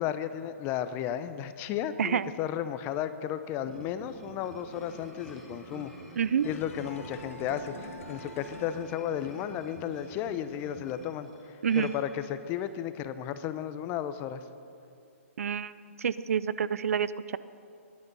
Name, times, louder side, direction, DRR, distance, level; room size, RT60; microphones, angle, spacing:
voice 1, 0.0-5.9 6.4-14.4, left 10 dB, 30° left, 12 dB, 0.7 m, -34 dB
voice 2, 2.0-2.3 6.2-6.5 11.6-11.9 15.4-17.4, right 8 dB, 75° right, 16 dB, 0.5 m, -28 dB
sound 1, 3.6-11.1, right 7 dB, 30° right, 1.0 m, -49 dB
sound 2, 3.7-12.8, left 1 dB, 5° left, 2.5 m, -54 dB
sound 3, 6.4-9.6 9.8-9.9, left 5 dB, 65° left, 1.3 m, -46 dB
19.5 x 11.0 x 5.5 m, 2.6 s
hypercardioid pair, 140°, 8 cm